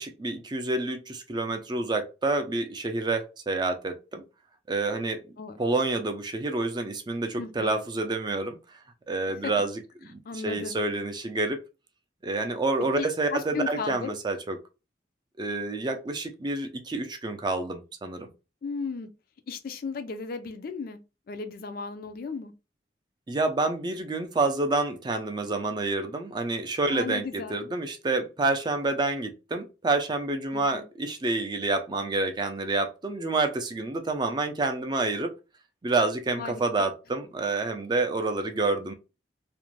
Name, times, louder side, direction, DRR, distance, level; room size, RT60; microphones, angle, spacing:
voice 1, 0.0-4.2 4.7-5.2 5.6-8.8 9.1-11.6 12.2-14.6 15.4-18.3 23.3-35.3 35.8-38.9, right 3 dB, 25° right, 0.4 m, -28 dB
voice 2, 7.4-7.7 9.3-9.5 10.3-10.8 13.0-14.1 18.6-19.1 19.5-21.0 21.3-22.5 26.9-27.6 30.5-30.8 36.4-36.8, left 4 dB, 55° left, 0.4 m, -35 dB
2.5 x 2.1 x 3.0 m
head